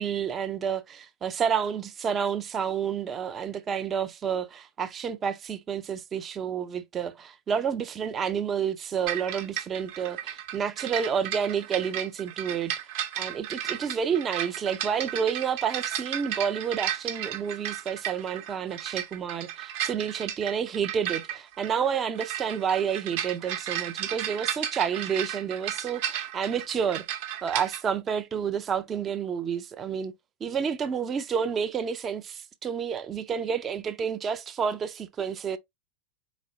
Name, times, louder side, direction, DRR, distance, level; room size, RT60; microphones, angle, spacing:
voice 1, 0.0-12.7 13.2-27.1 27.4-30.1 30.4-35.6, right 7 dB, 25° right, 0.5 m, -30 dB
sound 1, 9.1-27.8, right 10 dB, 50° right, 0.8 m, -34 dB
4.1 x 4.0 x 2.7 m
figure-of-eight pair, 90°, 0 cm